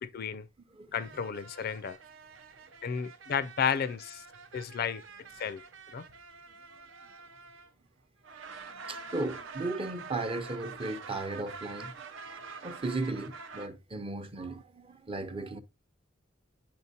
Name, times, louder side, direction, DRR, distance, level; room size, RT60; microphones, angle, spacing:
voice 1, 0.0-0.5 0.9-2.0 2.8-4.2 4.5-5.0 5.4-5.6 5.9-6.0, left 7 dB, 50° left, 0.4 m, -32 dB
sound 1, 0.9-7.9 8.2-13.7, right 5 dB, 70° right, 0.7 m, -47 dB
voice 2, 8.9-11.9 12.6-15.6, right 2 dB, 30° right, 0.7 m, -36 dB
9.4 x 4.4 x 2.8 m
head